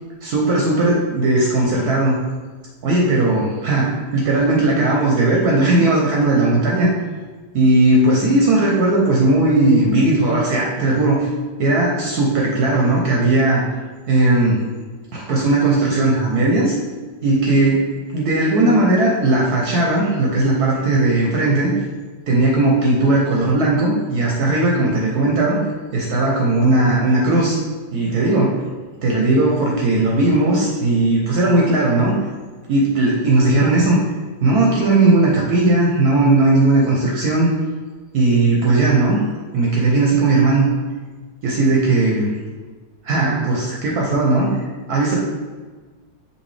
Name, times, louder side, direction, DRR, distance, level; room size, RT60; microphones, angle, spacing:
voice 1, 0.2-2.1 2.8-6.9 7.5-11.3 11.6-13.6 14.1-14.6 15.1-16.7 17.2-17.9 18.1-21.7 22.3-25.6 25.9-27.6 27.9-28.6 29.0-32.2 32.7-34.0 34.4-37.5 38.1-39.3 39.5-40.7 41.4-42.3 43.0-44.6 44.9-45.2, right 2 dB, 65° right, -2 dB, 1.0 m, -17 dB
5.3 x 2.8 x 3.2 m, 1.3 s
omnidirectional pair, 2.0 m